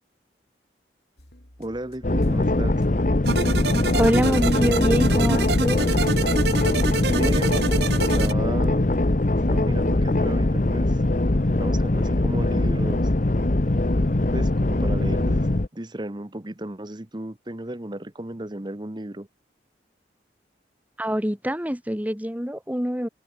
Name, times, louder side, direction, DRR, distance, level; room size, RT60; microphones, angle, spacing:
sound 1, 1.2-6.4, left 1 dB, 65° left, 4.7 m, -50 dB
voice 1, 1.6-2.9 7.0-7.7 7.9-8.9 9.5-11.1 11.6-13.1 14.3-19.3, right 1 dB, 25° right, 1.2 m, -34 dB
sound 2, 2.0-15.7, left 2 dB, 45° left, 1.0 m, -21 dB
sound 3, 3.3-8.3, right 4 dB, 70° right, 1.2 m, -28 dB
voice 2, 3.9-5.9 21.0-23.1, equal, 10° right, 2.1 m, -25 dB
head